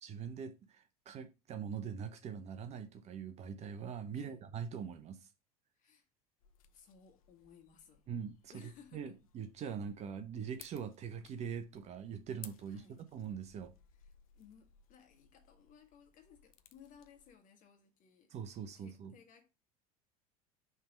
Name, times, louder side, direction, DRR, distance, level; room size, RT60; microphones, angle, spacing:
voice 1, 0.0-5.3 8.1-12.8 13.1-13.7 18.3-19.1, right 7 dB, 35° right, 0.8 m, -43 dB
voice 2, 5.8-6.1 6.7-8.0 8.5-9.2 12.7-13.1 14.0-18.3 18.8-19.5, left 7 dB, 40° left, 1.7 m, -61 dB
sound 1, 6.4-17.4, left 10 dB, 65° left, 0.6 m, -61 dB
5.4 x 3.5 x 5.1 m
figure-of-eight pair, 75°, 19 cm